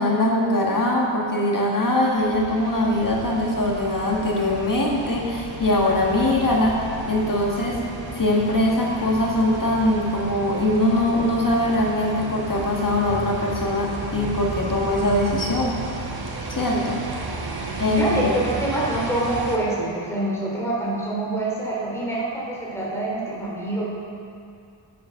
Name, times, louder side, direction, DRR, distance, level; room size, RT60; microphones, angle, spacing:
voice 1, 0.0-6.8 7.1-7.8 8.2-15.8 16.5-17.0 17.8-18.5, left 1 dB, 45° left, -2 dB, 1.6 m, -22 dB
sound 1, 2.2-19.6, right 3 dB, 55° right, 1.1 m, -33 dB
voice 2, 17.2-23.9, right 1 dB, 5° left, -6 dB, 2.8 m, -26 dB
8.4 x 7.7 x 5.7 m, 2.4 s
wide cardioid pair, 90°, 46 cm